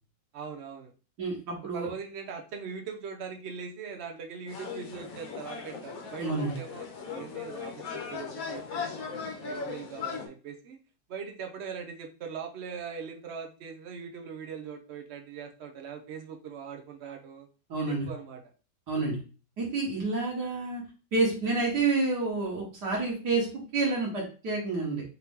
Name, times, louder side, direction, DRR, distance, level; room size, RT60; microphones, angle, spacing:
voice 1, 0.3-0.9 1.7-6.8 7.1-10.8 11.1-17.5 17.8-18.4, right 6 dB, 75° right, 3 dB, 0.6 m, -41 dB
voice 2, 1.2-1.9 6.2-6.5 17.7-18.1 18.9-19.2 19.6-20.8 21.1-25.0, right 3 dB, 60° right, -3 dB, 1.8 m, -29 dB
sound 1, 4.5-10.3, left 5 dB, 60° left, 1.2 m, -38 dB
4.0 x 2.8 x 3.6 m, 0.35 s
omnidirectional pair, 2.0 m